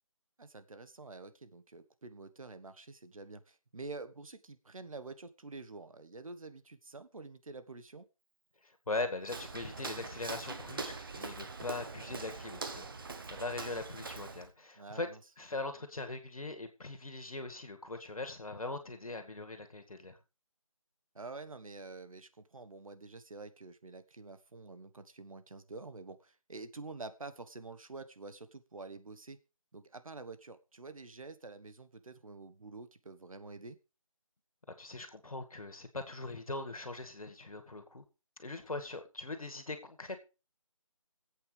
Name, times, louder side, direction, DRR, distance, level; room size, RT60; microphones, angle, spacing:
voice 1, 0.4-8.0 14.8-15.2 21.1-29.4 29.7-33.8, right 3 dB, 75° right, 1.3 m, -48 dB
voice 2, 8.6-15.1 15.4-20.2 34.8-38.0 38.4-40.2, left 2 dB, 85° left, 2.1 m, -41 dB
Walk footsteps, 9.2-14.5, right 4 dB, 40° right, 1.0 m, -43 dB
22.0 x 8.3 x 3.3 m
figure-of-eight pair, 165°, 18 cm